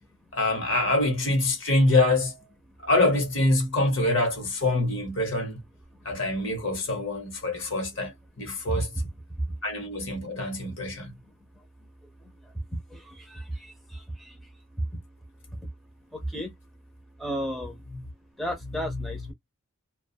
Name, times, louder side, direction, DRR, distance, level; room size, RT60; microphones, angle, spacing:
voice 1, 0.3-2.4 2.8-5.6 6.0-8.1 8.4-8.9 9.6-11.1, left 2 dB, 60° left, 1.0 m, -25 dB
voice 2, 17.2-17.8 18.4-19.3, equal, ahead, 0.5 m, -32 dB
2.4 x 2.2 x 2.7 m
head